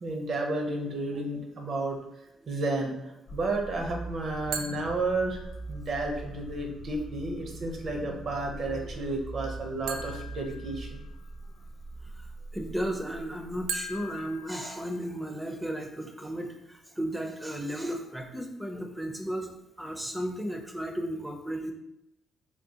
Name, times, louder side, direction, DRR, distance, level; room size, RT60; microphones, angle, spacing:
voice 1, 0.0-2.0 2.5-5.4 5.7-11.0, right 2 dB, 55° right, 2 dB, 0.7 m, -32 dB
sound 1, 3.3-14.2, right 2 dB, 50° left, 0.5 m, -42 dB
sound 2, 4.5-5.8 9.9-11.4 13.7-15.4, right 4 dB, 85° right, 0.3 m, -40 dB
voice 2, 12.5-21.7, equal, 5° right, 3 dB, 0.5 m, -34 dB
3.5 x 2.3 x 2.8 m, 0.86 s
cardioid pair, 90°, 0 cm